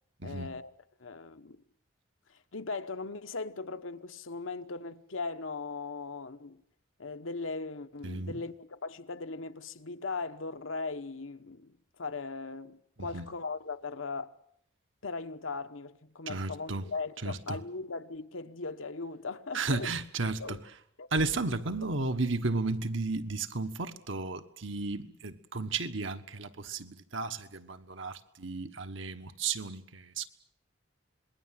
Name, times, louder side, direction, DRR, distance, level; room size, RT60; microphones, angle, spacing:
voice 1, 0.2-0.7 1.0-1.6 2.3-6.6 7.0-14.3 15.0-19.9 20.4-20.6 21.0-21.1, left 4 dB, 85° left, 1.1 m, -39 dB
voice 2, 16.3-16.8 17.2-17.6 19.5-20.6 21.1-30.3, right 3 dB, 75° right, 1.4 m, -33 dB
27.0 x 21.0 x 7.6 m
head